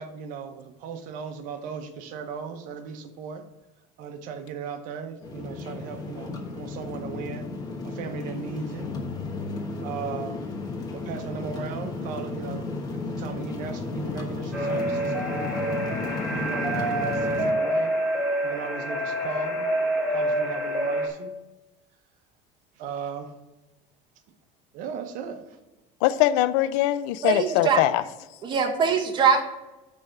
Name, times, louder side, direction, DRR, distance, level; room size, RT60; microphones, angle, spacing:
voice 1, 0.0-3.4 4.0-7.5 7.8-8.9 9.8-10.5 10.9-15.9 16.3-17.9 18.4-19.7 20.1-21.3 22.8-23.3 24.7-25.6, right 6 dB, 55° right, 7 dB, 0.9 m, -37 dB
sound 1, 5.2-17.5, left 3 dB, 25° left, 1.1 m, -33 dB
sound 2, 14.5-21.1, right 1 dB, ahead, 1.5 m, -27 dB
voice 2, 26.0-28.0, left 14 dB, 85° left, 15 dB, 0.5 m, -22 dB
voice 3, 27.2-27.8 28.4-29.4, right 6 dB, 30° right, 3 dB, 1.1 m, -22 dB
9.7 x 3.4 x 6.5 m, 1.1 s
cardioid pair, 155°, 16 cm